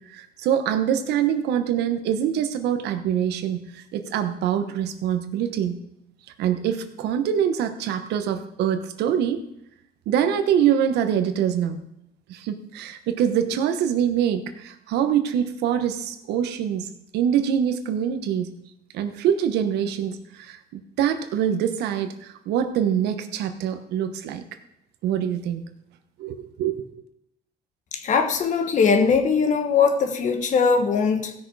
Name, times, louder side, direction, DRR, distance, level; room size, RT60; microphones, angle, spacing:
voice 1, 0.1-5.7 6.4-9.4 10.1-11.8 12.3-16.9 17.1-18.5 18.9-24.4 25.0-25.6 26.2-26.9, right 9 dB, 80° right, 9 dB, 1.1 m, -24 dB
voice 2, 27.9-31.3, left 5 dB, 45° left, 7 dB, 1.5 m, -20 dB
15.5 x 6.4 x 4.8 m, 0.82 s
cardioid pair, 110°, 17 cm